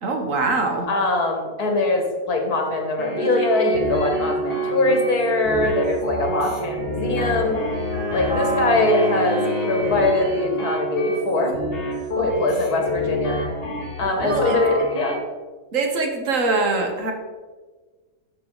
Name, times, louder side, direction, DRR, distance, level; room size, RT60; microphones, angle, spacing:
voice 1, 0.0-0.9 14.2-14.6 15.7-17.1, right 3 dB, 60° right, 3 dB, 1.5 m, -23 dB
voice 2, 0.9-7.6 8.1-11.5 12.2-13.4 14.0-15.1, left 2 dB, 85° left, 2 dB, 2.1 m, -22 dB
sound 1, 3.0-15.1, right 1 dB, 40° left, 2.0 m, -27 dB
Wind instrument woodwind instrument, 6.7-10.3, left 3 dB, 80° right, 3.0 m, -30 dB
11.5 x 5.2 x 3.9 m, 1.3 s
omnidirectional pair, 1.6 m